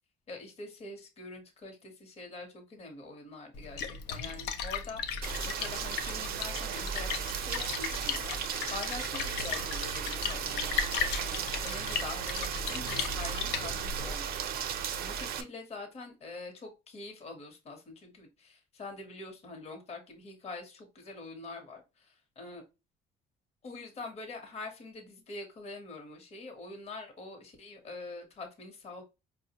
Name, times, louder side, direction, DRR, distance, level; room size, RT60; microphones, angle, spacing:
voice 1, 0.3-22.6 23.6-29.0, left 3 dB, 40° left, 3 dB, 0.9 m, -45 dB
Splash splatter, 3.5-14.1, left 5 dB, 80° left, 0.5 m, -36 dB
Rain, 5.2-15.4, right 8 dB, 60° right, 0.5 m, -36 dB
4.5 x 2.1 x 2.8 m, 0.27 s
cardioid pair, 110°, 17 cm